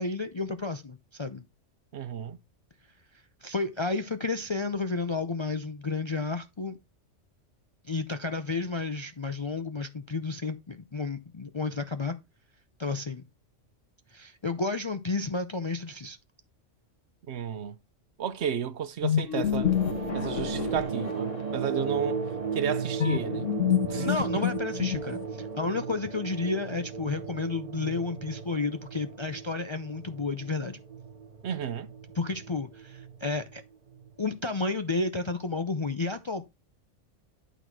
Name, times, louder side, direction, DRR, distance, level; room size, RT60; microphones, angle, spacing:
voice 1, 0.0-1.4 3.4-6.8 7.8-12.2 12.8-13.2 14.1-16.2 24.0-30.8 32.1-33.6 34.2-36.4, left 3 dB, 40° left, 0.4 m, -31 dB
voice 2, 1.9-2.4 17.3-17.7 18.2-19.7 20.1-22.2 22.5-23.5 23.9-24.1 31.4-31.9, right 8 dB, 65° right, 0.9 m, -32 dB
sound 1, 19.0-21.6 23.0-25.4, left 9 dB, 80° left, 1.3 m, -28 dB
sound 2, 19.4-34.3, right 5 dB, 35° right, 0.8 m, -36 dB
11.0 x 4.1 x 4.6 m
omnidirectional pair, 1.3 m